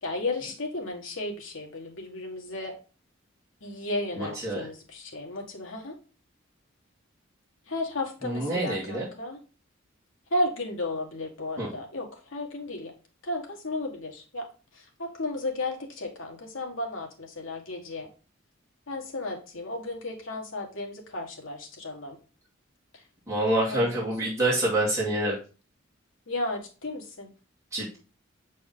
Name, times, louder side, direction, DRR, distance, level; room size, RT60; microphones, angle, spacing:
voice 1, 0.0-2.8 3.6-6.0 7.7-9.4 10.3-12.9 13.2-14.5 14.7-18.1 18.9-22.2 23.6-24.1 26.3-27.3, left 2 dB, 75° left, 1 dB, 1.6 m, -34 dB
voice 2, 4.2-4.7 8.2-9.1 11.6-11.7 23.3-25.4 27.7-28.0, right 1 dB, 15° right, -8 dB, 2.3 m, -27 dB
6.6 x 4.3 x 3.7 m, 0.35 s
head